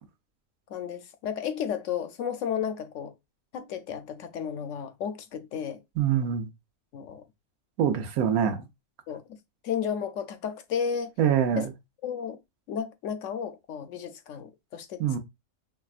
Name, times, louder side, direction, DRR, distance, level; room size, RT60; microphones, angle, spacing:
voice 1, 0.7-3.1 3.5-5.8 6.9-7.2 9.1-9.2 9.6-11.1 11.6-11.7 12.0-12.4 12.7-15.2, left 7 dB, 70° left, 0.9 m, -33 dB
voice 2, 6.0-6.5 7.8-8.7 11.2-11.7 15.0-15.2, right 8 dB, 90° right, 1.2 m, -24 dB
5.6 x 2.2 x 2.4 m
omnidirectional pair, 1.4 m